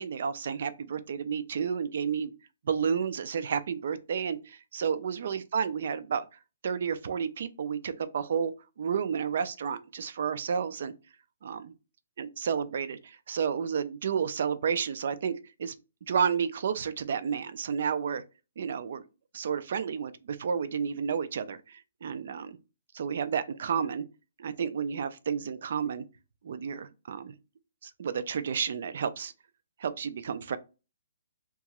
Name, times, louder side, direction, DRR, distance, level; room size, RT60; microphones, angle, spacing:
voice 1, 0.0-2.3 2.6-6.3 6.6-8.5 8.8-10.9 11.4-11.7 12.2-15.7 16.0-18.2 18.6-19.1 19.3-22.6 22.9-24.1 24.4-26.0 26.4-27.3 27.8-29.3 29.8-30.6, right 7 dB, 40° right, 0.3 m, -31 dB
2.9 x 2.3 x 2.9 m
hypercardioid pair, 180°, 0 cm